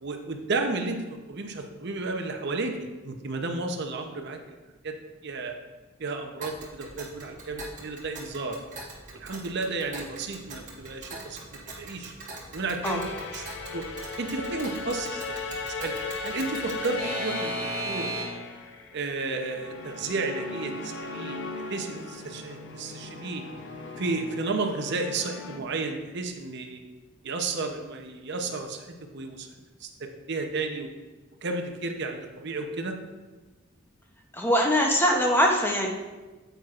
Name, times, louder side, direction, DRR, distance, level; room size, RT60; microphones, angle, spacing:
voice 1, 0.0-4.4 4.8-4.9 5.2-5.6 6.0-8.6 9.1-12.1 12.5-13.9 14.2-15.5 15.8-15.9 16.2-17.6 17.8-18.3 18.9-23.4 24.0-26.8 27.2-29.5 29.8-30.9 31.4-33.0, right 3 dB, 55° right, 5 dB, 0.7 m, -32 dB
Alarm / Clock, 6.4-18.6, right 2 dB, 35° right, 1.4 m, -39 dB
sound 1, 12.8-25.6, left 3 dB, 60° left, 0.7 m, -37 dB
voice 2, 34.3-35.9, equal, 10° left, 1 dB, 0.7 m, -22 dB
8.9 x 7.9 x 2.5 m, 1.2 s
head